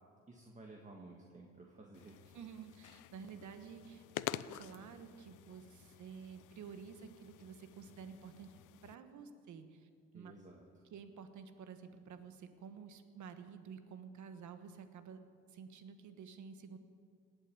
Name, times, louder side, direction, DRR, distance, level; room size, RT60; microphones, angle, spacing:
voice 1, 0.3-2.2 3.4-3.5 10.1-10.8, right 2 dB, 25° right, 1 dB, 1.7 m, -55 dB
sound 1, 1.9-8.9, left 14 dB, 85° left, 0.5 m, -48 dB
voice 2, 2.3-8.5 8.8-10.3 10.9-15.2 15.5-16.8, right 6 dB, 70° right, 9 dB, 1.4 m, -51 dB
18.5 x 8.9 x 8.6 m, 2.2 s
cardioid pair, 90°, 30 cm